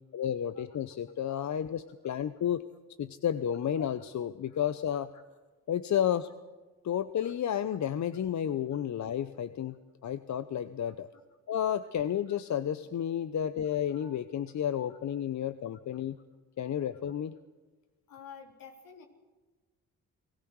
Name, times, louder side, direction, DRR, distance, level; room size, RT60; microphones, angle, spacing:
voice 1, 0.1-2.7 3.0-5.1 5.7-6.3 6.8-9.8 10.0-11.1 11.5-16.2 16.6-17.4, left 9 dB, 55° left, 13 dB, 0.8 m, -31 dB
voice 2, 18.1-19.1, left 6 dB, 75° left, 2 dB, 3.7 m, -51 dB
30.0 x 19.0 x 4.8 m, 1.3 s
supercardioid pair, 55°, 35 cm